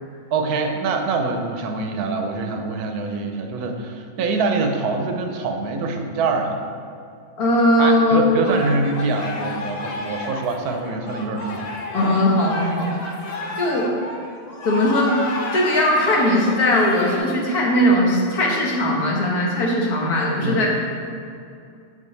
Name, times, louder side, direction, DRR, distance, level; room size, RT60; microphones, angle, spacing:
voice 1, 0.3-6.6 7.8-11.7 20.4-20.7, right 3 dB, 85° right, 4 dB, 1.2 m, -24 dB
voice 2, 7.4-8.4 11.9-12.9 13.6-13.9 14.7-15.1 15.5-20.7, left 1 dB, 85° left, -3 dB, 1.8 m, -19 dB
sound 1, 8.4-17.2, left 2 dB, 50° left, 0.5 m, -31 dB
7.5 x 5.5 x 3.2 m, 2.4 s
omnidirectional pair, 1.6 m